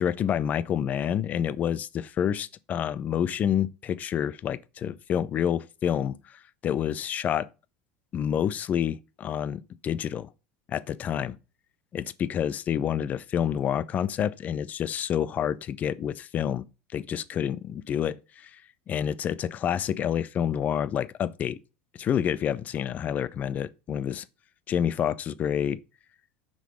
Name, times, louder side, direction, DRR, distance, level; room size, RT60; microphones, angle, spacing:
voice 1, 0.0-6.2 6.6-7.5 8.1-10.3 10.7-11.4 11.9-16.7 16.9-18.2 18.4-18.5 18.9-21.6 22.0-24.2 24.7-25.8, left 9 dB, 35° left, 0.4 m, -28 dB
5.6 x 3.8 x 4.8 m
supercardioid pair, 120°, 5 cm